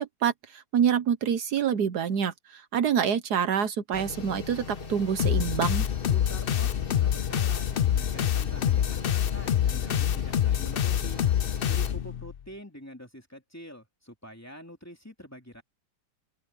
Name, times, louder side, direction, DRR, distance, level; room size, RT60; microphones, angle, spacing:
voice 1, 0.0-5.9, right 8 dB, 70° right, 1.5 m, -27 dB
sound 1, 3.9-11.9, left 4 dB, 35° left, 1.7 m, -40 dB
sound 2, 5.2-12.3, left 10 dB, 65° left, 0.5 m, -26 dB
voice 2, 6.1-11.2 11.6-15.6, equal, 10° left, 2.7 m, -46 dB
open air
omnidirectional pair, 1.8 m